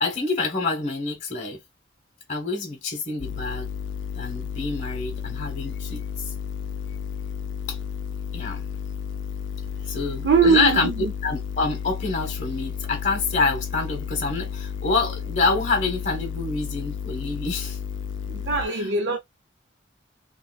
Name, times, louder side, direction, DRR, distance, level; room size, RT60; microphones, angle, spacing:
voice 1, 0.0-1.6 2.3-3.7 4.1-6.0 7.7-7.8 8.3-8.7 9.9-10.9 11.2-17.8, left 4 dB, 40° left, 1.1 m, -26 dB
sound 1, 3.2-18.7, left 7 dB, 80° left, 0.5 m, -32 dB
voice 2, 10.2-11.1 18.2-19.2, right 5 dB, 65° right, 0.6 m, -22 dB
3.9 x 2.4 x 2.2 m
head